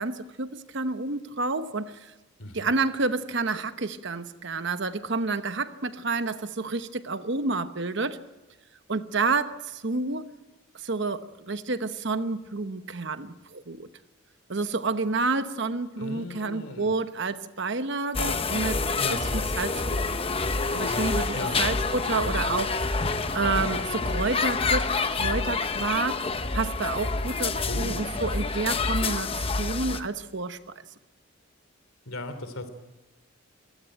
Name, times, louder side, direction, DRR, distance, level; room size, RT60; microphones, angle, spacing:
voice 1, 0.0-2.1 2.5-8.2 8.9-10.3 10.7-13.9 14.5-18.9 19.2-20.2 20.7-30.7, right 3 dB, 55° right, 1.0 m, -29 dB
voice 2, 2.4-2.7 16.0-16.9 19.0-19.2 21.3-21.6 27.7-28.1 32.1-32.7, left 2 dB, 75° left, 3.0 m, -37 dB
sound 1, 18.1-30.0, left 3 dB, 25° left, 0.9 m, -27 dB
23.5 x 16.5 x 9.1 m
head